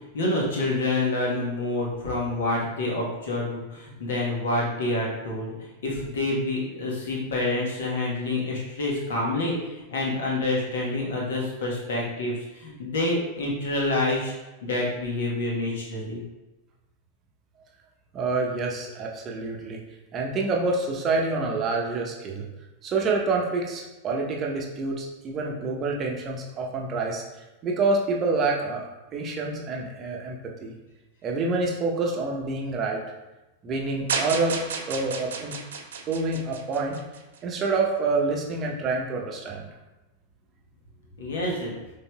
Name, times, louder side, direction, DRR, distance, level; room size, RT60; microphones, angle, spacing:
voice 1, 0.1-14.3 14.6-16.2 41.2-41.7, left 2 dB, 60° left, -3 dB, 1.2 m, -27 dB
voice 2, 18.1-19.8 20.1-22.5 22.8-27.2 27.6-30.7 31.2-33.0 33.6-35.6 36.1-37.0 37.4-39.7, right 3 dB, 30° right, -1 dB, 0.8 m, -27 dB
sound 1, 34.1-37.4, right 5 dB, 60° right, 0.5 m, -32 dB
5.4 x 3.5 x 2.3 m, 1.0 s
figure-of-eight pair, 90°, 0 cm